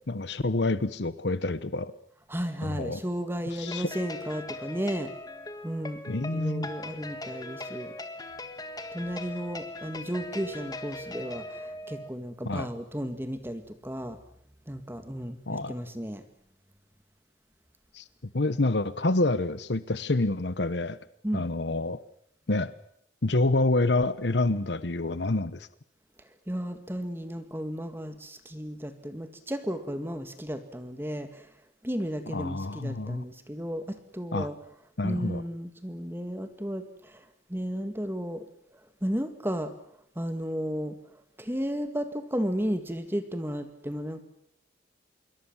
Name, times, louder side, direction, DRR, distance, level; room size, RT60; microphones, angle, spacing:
voice 1, 0.0-1.9 2.6-3.0 3.6-3.9 6.1-6.7 12.4-12.7 15.5-15.8 17.9-18.0 18.3-21.0 21.3-22.0 22.5-22.7 23.2-25.7 32.3-33.2 34.3-34.5 35.0-35.4, left 2 dB, 75° left, 15 dB, 1.0 m, -27 dB
voice 2, 2.3-5.1 5.6-6.0 6.3-7.9 8.9-14.2 14.7-16.2 21.2-21.5 26.5-31.4 31.8-34.6 35.0-37.2 37.5-38.4 39.0-39.7 40.2-41.0 41.4-44.2, equal, 10° right, 9 dB, 1.9 m, -33 dB
sound 1, 3.7-12.1, left 2 dB, 20° left, 1.8 m, -40 dB
26.5 x 22.5 x 7.3 m, 0.72 s
head